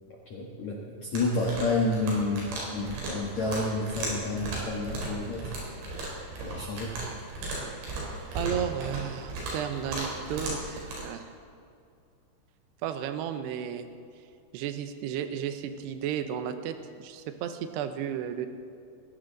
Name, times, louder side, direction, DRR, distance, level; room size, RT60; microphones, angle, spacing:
voice 1, 0.3-5.5 6.4-6.9, left 2 dB, 85° left, -1 dB, 1.6 m, -30 dB
sound 1, 1.1-11.0, right 2 dB, 65° right, 6.4 m, -36 dB
voice 2, 8.3-11.3 12.8-13.9 14.5-18.5, right 9 dB, 80° right, 8 dB, 2.5 m, -33 dB
21.0 x 15.5 x 4.0 m, 2.4 s
omnidirectional pair, 5.8 m